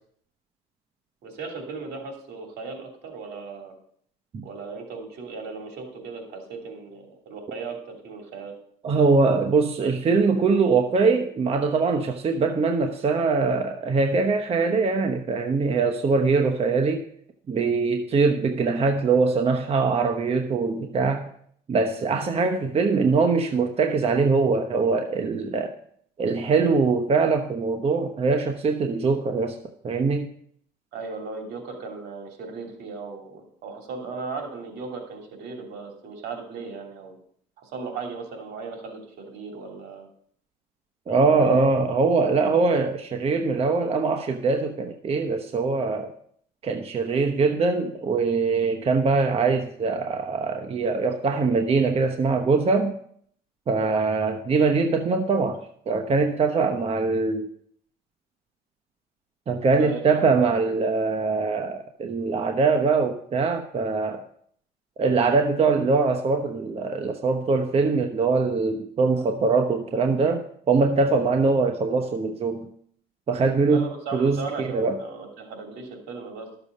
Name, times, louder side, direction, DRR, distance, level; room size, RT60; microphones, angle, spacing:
voice 1, 1.2-3.7 4.4-8.5 30.9-37.2 37.6-40.1 41.2-41.7 59.8-60.6 73.7-76.5, right 4 dB, 80° right, 2 dB, 2.9 m, -37 dB
voice 2, 8.8-17.1 17.5-21.3 21.7-25.7 26.2-29.6 29.8-30.3 41.1-46.1 46.6-53.0 53.7-55.6 55.9-57.5 59.5-64.2 65.0-72.7 73.3-73.8 74.1-75.0, right 4 dB, 35° right, 4 dB, 1.0 m, -22 dB
12.5 x 7.0 x 5.3 m, 0.63 s
cardioid pair, 110°, 17 cm